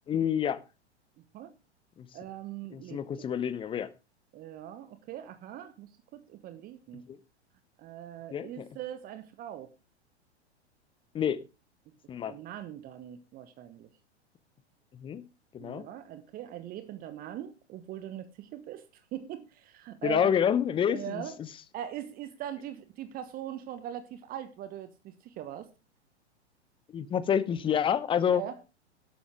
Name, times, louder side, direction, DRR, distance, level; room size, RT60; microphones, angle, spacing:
voice 1, 0.1-0.6 2.0-2.1 2.7-3.9 7.1-7.2 8.3-8.6 11.1-11.4 12.1-12.3 14.9-15.2 15.5-15.9 20.0-21.5 26.9-28.4, left 8 dB, 15° left, 0.8 m, -28 dB
voice 2, 2.1-3.3 4.3-7.0 7.8-9.7 12.2-13.9 15.6-18.8 19.1-20.3 20.9-21.4 21.7-25.7 28.3-28.7, right 11 dB, 25° right, 1.2 m, -41 dB
12.5 x 11.5 x 3.6 m
figure-of-eight pair, 100°, 34 cm